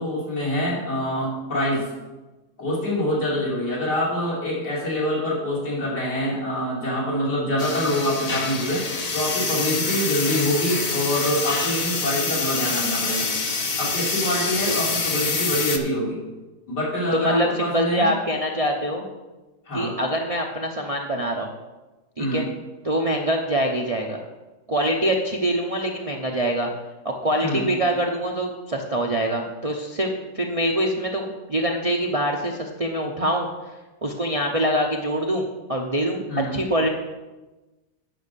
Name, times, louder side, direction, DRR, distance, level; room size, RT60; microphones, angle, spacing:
voice 1, 0.0-1.9 2.6-8.8 9.1-13.3 13.8-16.2 16.7-18.1 19.7-19.9 22.2-22.5 27.4-27.7 36.3-36.6, equal, 85° left, -7 dB, 3.5 m, -25 dB
sound 1, 7.6-15.8, left 4 dB, 45° left, 0.5 m, -26 dB
voice 2, 17.1-19.0 19.7-21.5 22.2-22.5 22.8-24.2 24.7-26.7 27.0-33.5 34.0-36.2 36.5-36.9, equal, 35° right, 0 dB, 0.5 m, -24 dB
9.3 x 5.6 x 6.8 m, 1.1 s
omnidirectional pair, 1.7 m